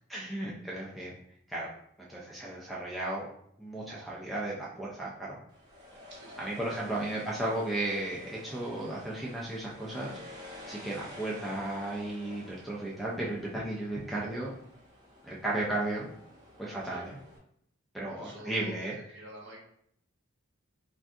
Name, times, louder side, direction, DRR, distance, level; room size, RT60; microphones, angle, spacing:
voice 1, 0.1-1.2 1.5-1.7 2.0-3.3 3.6-5.4 6.4-10.2 10.7-14.5 15.2-16.1 16.6-17.2 17.9-18.9, right 1 dB, ahead, -6 dB, 0.4 m, -34 dB
sound 1, 5.5-17.4, left 1 dB, 20° right, 0.8 m, -50 dB
voice 2, 6.1-6.5 6.8-7.3 16.9-17.1 18.1-19.6, right 1 dB, 55° right, -2 dB, 0.9 m, -48 dB
3.4 x 2.6 x 2.4 m, 0.70 s
head